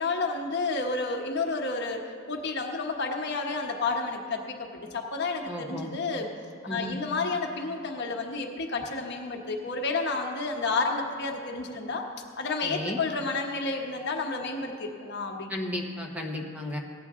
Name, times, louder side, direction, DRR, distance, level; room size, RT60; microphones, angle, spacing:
voice 1, 0.0-2.0 2.3-6.3 6.6-12.0 12.4-15.5, left 3 dB, 55° left, 1 dB, 1.2 m, -30 dB
voice 2, 5.5-5.9 6.7-7.0 12.6-13.0 15.5-16.8, left 1 dB, 5° right, 0 dB, 1.1 m, -34 dB
17.0 x 9.6 x 3.7 m, 2.4 s
head